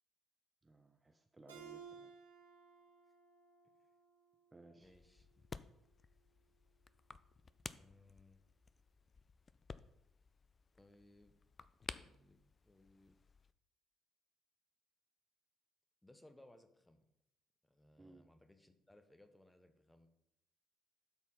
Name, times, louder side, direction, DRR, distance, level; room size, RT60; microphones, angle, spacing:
voice 1, 0.6-2.1 4.5-4.9 18.0-18.2, right 2 dB, 20° right, 6 dB, 0.7 m, -61 dB
Keyboard (musical), 1.5-4.7, right 7 dB, 85° right, 1.3 m, -57 dB
sound 1, 4.8-13.5, left 5 dB, 35° left, 0.4 m, -54 dB
voice 2, 4.8-5.3 7.8-8.4 10.7-11.4 11.9-13.2 16.0-17.1 17.6-20.1, left 1 dB, 10° left, 7 dB, 1.2 m, -65 dB
12.5 x 4.4 x 4.1 m, 0.79 s
figure-of-eight pair, 45°, 0 cm